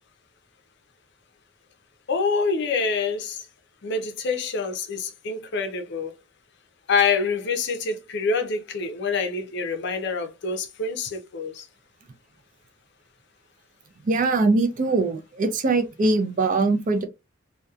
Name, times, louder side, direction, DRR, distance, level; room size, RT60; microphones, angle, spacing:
voice 1, 2.1-3.5 3.8-6.1 6.9-11.7, left 4 dB, 60° left, 0.5 m, -26 dB
voice 2, 14.0-17.0, right 3 dB, 40° right, 0.4 m, -22 dB
2.7 x 2.2 x 2.3 m
head